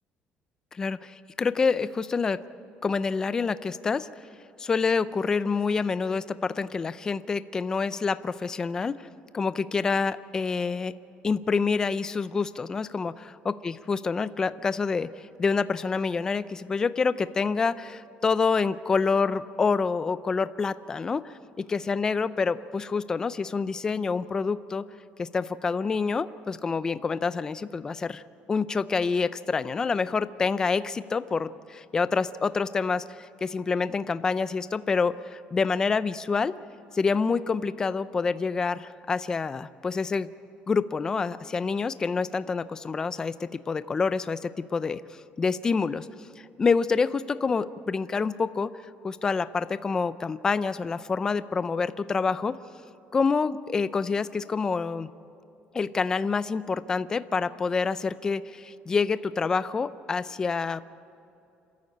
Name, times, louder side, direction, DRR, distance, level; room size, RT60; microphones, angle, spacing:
voice 1, 0.7-2.4 2.8-4.1 4.6-9.1 9.3-10.9 11.2-13.1 13.6-21.3 21.7-24.8 25.2-28.2 28.5-36.5 36.9-40.3 40.7-45.0 45.4-46.1 46.6-48.7 49.0-52.6 53.1-55.1 55.7-60.8, left 5 dB, 20° left, 14 dB, 0.4 m, -27 dB
27.0 x 13.5 x 8.6 m, 2.7 s
cardioid pair, 175°, 4 cm